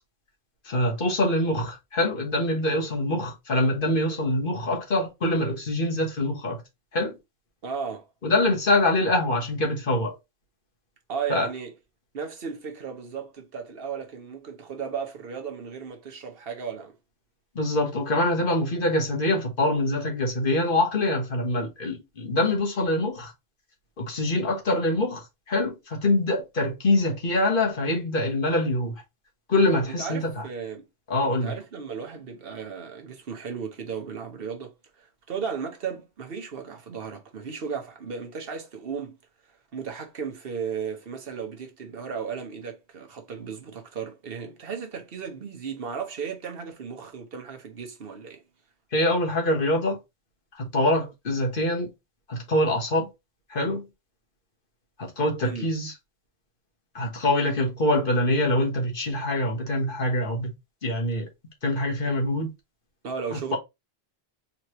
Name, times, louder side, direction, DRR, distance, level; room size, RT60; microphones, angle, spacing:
voice 1, 0.6-6.6 6.9-7.2 8.2-10.1 11.3-11.5 17.5-23.3 24.0-28.9 29.5-30.2 31.1-31.5 48.9-50.0 50.6-51.9 52.3-53.1 53.5-53.9 55.0-55.9 56.9-60.5 60.8-61.3 61.6-62.5 63.3-63.6, left 1 dB, 55° left, 1.4 m, -24 dB
voice 2, 7.6-8.1 11.1-11.7 12.1-16.9 30.0-30.8 31.3-39.2 39.5-48.4 55.4-55.7 63.0-63.6, right 6 dB, 65° right, 1.1 m, -35 dB
4.0 x 3.1 x 2.9 m
omnidirectional pair, 1.1 m